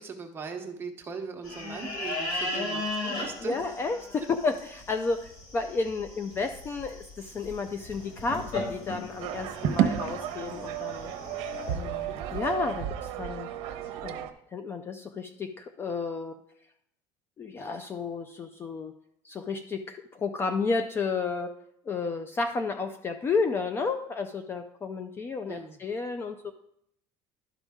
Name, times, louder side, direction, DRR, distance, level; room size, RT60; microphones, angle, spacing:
voice 1, 0.0-3.6 25.5-25.8, right 5 dB, 20° right, 3 dB, 1.0 m, -39 dB
sound 1, 1.4-11.8, left 2 dB, 50° left, 3.7 m, -37 dB
voice 2, 3.4-11.1 11.7-12.8 13.2-13.5 14.0-16.4 17.4-18.9 19.2-21.5 21.9-26.5, left 4 dB, 20° left, 7 dB, 0.4 m, -32 dB
sound 2, 7.9-12.9, left 2 dB, 75° left, 1.8 m, -52 dB
sound 3, 9.2-14.3, right 10 dB, 60° right, 0.8 m, -32 dB
12.0 x 5.3 x 3.6 m, 0.73 s
cardioid pair, 165°, 11 cm